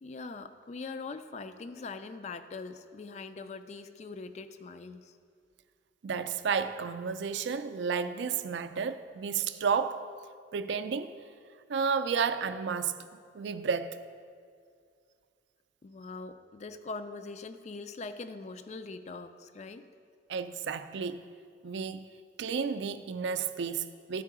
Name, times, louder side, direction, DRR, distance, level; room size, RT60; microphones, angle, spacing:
voice 1, 0.0-5.2 15.8-19.8, left 3 dB, 35° left, 0.3 m, -42 dB
voice 2, 6.0-10.0 10.5-11.1 11.7-13.0 13.3-14.0 20.3-21.2 21.6-22.1 22.4-24.2, right 6 dB, 70° right, 0.4 m, -32 dB
12.5 x 4.5 x 4.8 m
head